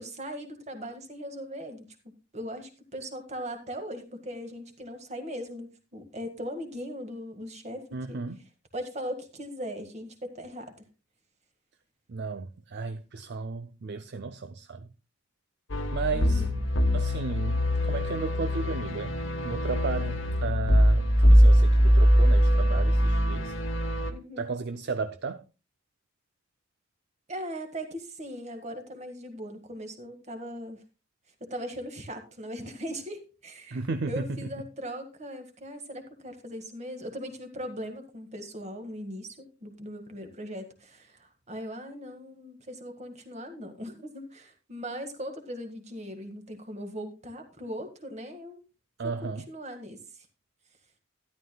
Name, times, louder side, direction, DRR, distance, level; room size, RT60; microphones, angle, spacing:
voice 1, 0.0-1.9 2.3-8.2 8.7-10.7 16.1-16.6 24.1-24.5 27.3-30.8 31.4-33.8 34.1-48.6 49.2-50.3, equal, 35° right, 1.7 m, -39 dB
voice 2, 7.9-8.4 12.1-14.9 15.9-16.5 16.9-19.1 19.4-23.5 24.4-25.4 33.7-34.5 49.0-49.5, right 4 dB, 55° right, 0.5 m, -34 dB
sound 1, 15.7-24.1, equal, 65° left, 1.2 m, -22 dB
12.5 x 11.0 x 2.3 m
head